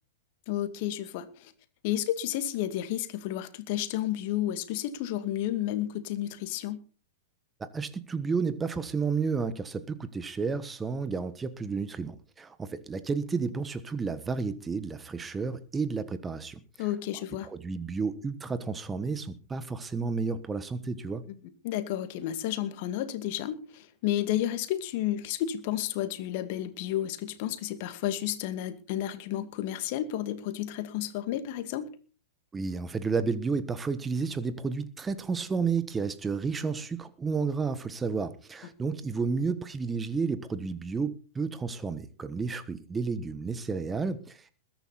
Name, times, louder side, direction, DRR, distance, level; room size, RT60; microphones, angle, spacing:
voice 1, 0.5-1.5 1.8-6.8 16.8-17.5 21.6-31.9, left 12 dB, 50° left, 2.2 m, -31 dB
voice 2, 7.6-16.9 17.4-21.2 32.5-44.5, right 4 dB, 15° right, 1.3 m, -31 dB
21.5 x 10.5 x 4.2 m
figure-of-eight pair, 105°, 0 cm